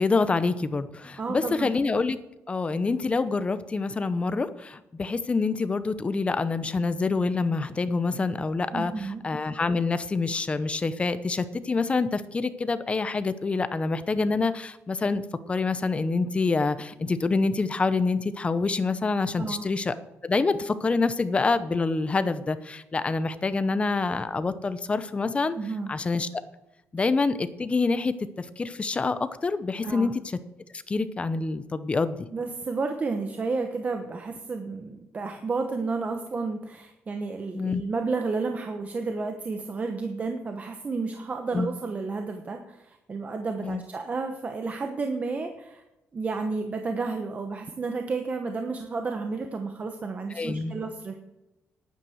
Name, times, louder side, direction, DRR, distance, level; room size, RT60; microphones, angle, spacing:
voice 1, 0.0-2.2 2.5-15.2 15.5-19.9 20.2-25.5 25.9-26.3 26.9-30.1 30.7-32.3 37.5-37.8 41.5-41.7 43.6-43.8 50.3-50.7, left 3 dB, 25° left, 13 dB, 0.8 m, -26 dB
voice 2, 1.2-1.7 8.7-9.2 19.4-19.7 25.5-25.9 29.8-30.1 32.3-45.8 46.1-51.1, right 4 dB, 30° right, 5 dB, 1.0 m, -31 dB
11.0 x 9.3 x 6.4 m, 0.94 s
cardioid pair, 135°, 5 cm